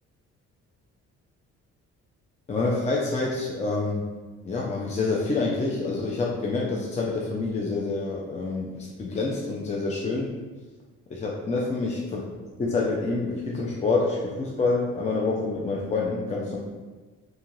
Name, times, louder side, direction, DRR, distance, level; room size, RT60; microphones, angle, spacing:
voice 1, 2.5-4.1 4.4-10.3 11.1-12.2 12.6-16.6, left 3 dB, 25° left, -3 dB, 0.4 m, -27 dB
2.6 x 2.3 x 3.0 m, 1.3 s
cardioid pair, 90°, 30 cm